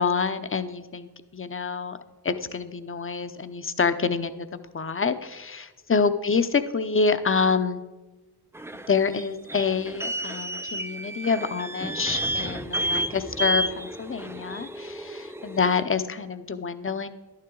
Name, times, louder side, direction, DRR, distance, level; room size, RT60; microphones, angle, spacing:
voice 1, 0.0-2.0 2.2-4.5 4.7-7.8 8.9-17.1, left 5 dB, 30° left, 11 dB, 0.7 m, -27 dB
sound 1, 8.5-15.8, right 1 dB, 5° right, 0.4 m, -31 dB
11.0 x 9.7 x 3.8 m, 1.2 s
cardioid pair, 55°, 40 cm